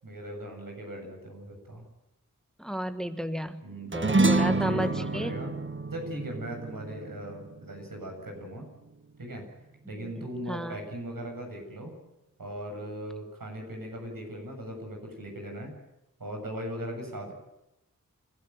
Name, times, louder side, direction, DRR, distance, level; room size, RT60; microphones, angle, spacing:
voice 1, 0.0-1.9 3.6-5.5 5.9-8.7 9.2-9.5 9.9-11.9 12.4-15.7 16.2-17.3, right 1 dB, 75° right, 2 dB, 7.7 m, -39 dB
voice 2, 2.6-3.6 3.9-5.4 10.0-10.8, equal, ahead, 10 dB, 1.4 m, -33 dB
sound 1, 3.9-8.6, right 3 dB, 35° right, 1.2 m, -28 dB
28.5 x 13.0 x 9.5 m, 0.91 s
wide cardioid pair, 55°, 34 cm